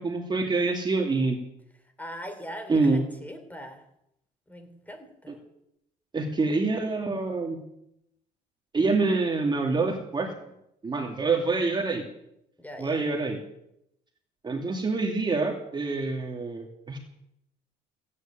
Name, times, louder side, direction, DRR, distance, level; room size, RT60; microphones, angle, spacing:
voice 1, 0.0-1.4 2.7-3.0 6.1-7.6 8.7-10.3 10.8-12.0 12.8-13.4 14.4-17.0, right 3 dB, 25° right, 3 dB, 2.6 m, -26 dB
voice 2, 2.0-3.9 4.5-5.4 11.4-11.6 12.6-13.0, equal, 10° left, 7 dB, 3.5 m, -41 dB
16.5 x 9.7 x 9.1 m, 0.78 s
cardioid pair, 110°, 17 cm